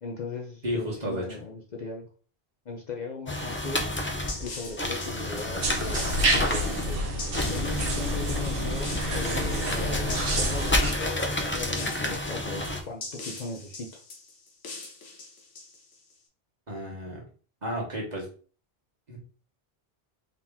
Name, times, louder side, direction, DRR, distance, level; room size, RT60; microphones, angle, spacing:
voice 1, 0.0-2.1 2.7-3.9 4.4-7.0 7.5-14.0, left 3 dB, 50° left, 0 dB, 0.7 m, -38 dB
voice 2, 0.6-1.4 16.7-17.2 17.6-18.3 19.1-19.2, equal, 45° right, -3 dB, 1.5 m, -32 dB
sound 1, 3.3-12.8, left 1 dB, 15° left, 0.4 m, -30 dB
sound 2, 3.9-16.1, left 3 dB, 85° left, 1.1 m, -42 dB
sound 3, 5.6-10.9, right 1 dB, 65° right, 1.1 m, -29 dB
3.9 x 2.9 x 3.5 m, 0.40 s
omnidirectional pair, 1.0 m